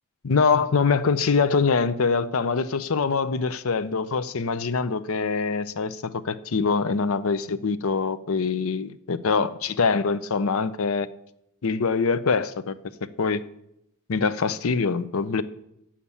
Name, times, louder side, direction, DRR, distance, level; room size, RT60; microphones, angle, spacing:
voice 1, 0.2-11.1 11.6-12.7 13.2-13.4 14.1-15.4, left 5 dB, 65° left, 0.6 m, -24 dB
7.4 x 7.2 x 8.2 m
head